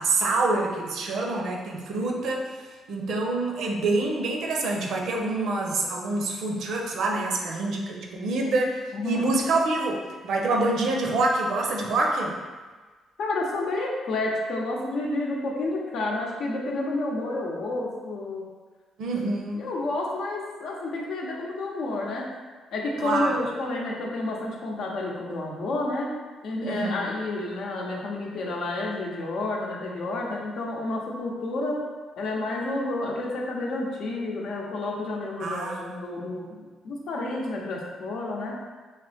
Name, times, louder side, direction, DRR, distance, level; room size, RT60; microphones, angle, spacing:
voice 1, 0.0-2.5 2.9-12.4 19.0-19.6 23.0-23.3 26.6-27.1 35.4-36.3, right 2 dB, 75° right, 0 dB, 0.6 m, -26 dB
voice 2, 8.9-9.2 13.2-18.4 19.1-19.2 19.5-22.3 22.7-26.1 26.4-31.8 32.2-38.5, left 2 dB, 70° left, -2 dB, 0.7 m, -30 dB
3.2 x 2.8 x 3.4 m, 1.4 s
cardioid pair, 90°, 0 cm